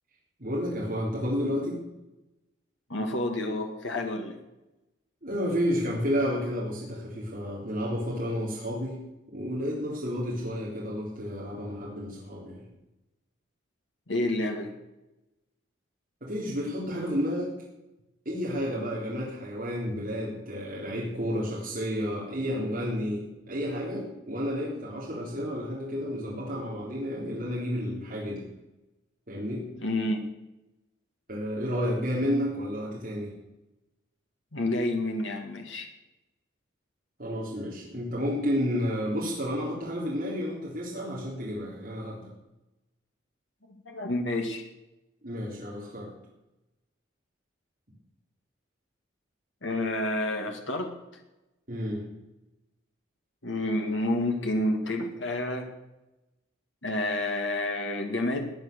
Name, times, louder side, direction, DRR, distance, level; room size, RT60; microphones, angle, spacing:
voice 1, 0.4-1.8 5.2-9.0 9.3-12.6 16.2-17.5 18.3-28.4 29.3-29.7 31.3-33.3 37.2-42.3 45.2-46.1 51.7-52.0, equal, 45° right, -5 dB, 3.7 m, -31 dB
voice 2, 2.9-4.4 14.1-14.7 29.8-30.2 34.5-35.9 43.9-44.6 49.6-50.9 53.4-55.7 56.8-58.5, left 1 dB, 75° left, 3 dB, 2.1 m, -29 dB
17.5 x 9.6 x 6.8 m, 0.97 s
head